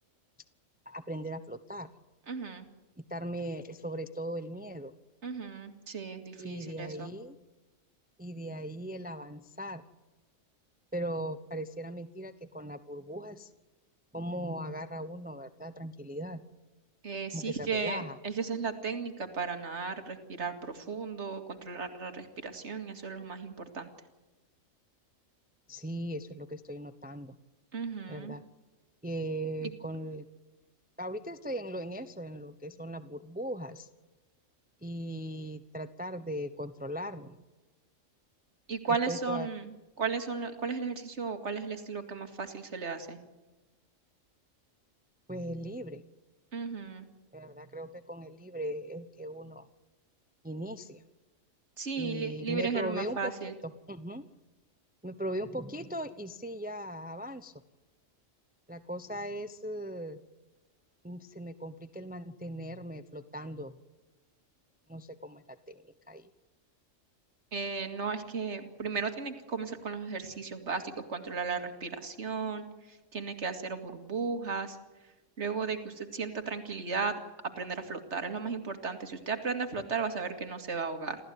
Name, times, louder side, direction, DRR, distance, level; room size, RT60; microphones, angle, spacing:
voice 1, 0.9-1.9 3.0-4.9 6.4-7.4 8.2-9.8 10.9-13.5 14.1-16.4 17.3-18.2 25.7-27.4 28.1-28.4 29.0-30.3 31.0-33.9 34.8-37.4 38.9-39.5 45.3-46.0 47.3-49.7 50.4-51.0 52.0-53.3 53.9-54.2 55.0-57.5 58.7-60.2 61.0-63.7 64.9-66.3, right 1 dB, 10° right, 11 dB, 0.8 m, -38 dB
voice 2, 2.3-2.7 5.2-7.1 17.0-23.9 27.7-28.4 38.7-39.7 40.0-43.2 46.5-47.1 51.8-53.5 67.5-72.7 73.1-74.8 75.4-81.2, right 5 dB, 60° right, 6 dB, 2.5 m, -35 dB
28.5 x 14.5 x 9.4 m, 1.1 s
omnidirectional pair, 1.3 m